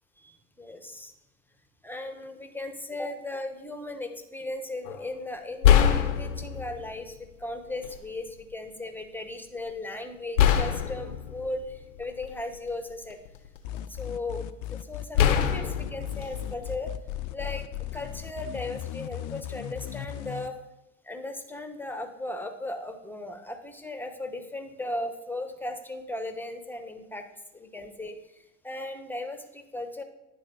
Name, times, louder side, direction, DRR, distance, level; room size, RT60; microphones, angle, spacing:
voice 1, 0.2-1.1 1.8-13.2 13.9-14.4 14.9-16.9 17.3-17.6 17.9-20.6 21.0-27.3 27.5-28.1 28.6-30.0, left 2 dB, 5° left, 6 dB, 1.0 m, -37 dB
sound 1, 4.9-5.0 5.6-6.9 7.8-8.0 10.4-12.5 13.1-14.0 15.2-17.2, left 9 dB, 85° left, 0.8 m, -24 dB
sound 2, 13.6-20.5, left 12 dB, 50° left, 0.6 m, -36 dB
10.0 x 4.0 x 5.4 m, 0.94 s
hypercardioid pair, 85°, 38 cm